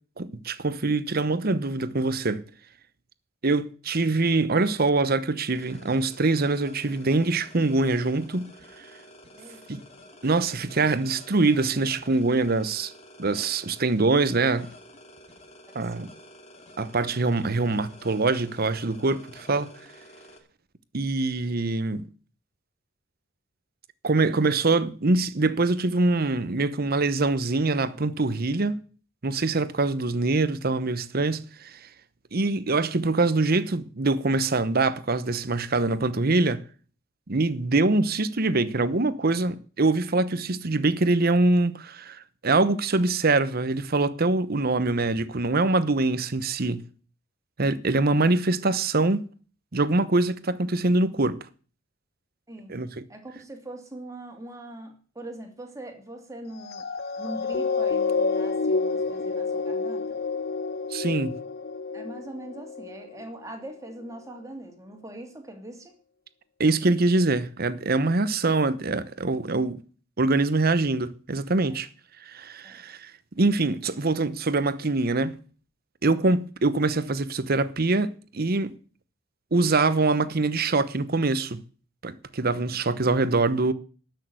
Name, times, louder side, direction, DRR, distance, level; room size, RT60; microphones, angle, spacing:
voice 1, 0.2-2.4 3.4-8.5 9.7-9.8 10.2-12.9 13.2-14.7 15.7-16.1 16.8-19.7 20.9-22.1 24.0-28.8 29.2-31.9 32.3-36.6 37.3-46.8 47.6-49.3 49.7-51.4 52.7-53.0 60.9-61.4 66.6-69.8 70.2-71.9 72.3-73.1 73.4-75.4 76.0-78.7 79.5-81.6 82.0-83.7, right 3 dB, 50° right, 1.0 m, -24 dB
sound 1, 5.5-20.4, left 1 dB, 35° left, 2.3 m, -50 dB
voice 2, 15.8-16.1 52.5-52.7 53.1-56.9 57.1-60.2 61.9-65.9 71.6-71.8 72.6-72.8, right 1 dB, 15° right, 2.6 m, -42 dB
sound 2, 56.6-63.3 63.9-64.0, left 4 dB, 55° left, 1.0 m, -29 dB
12.5 x 6.6 x 9.4 m
head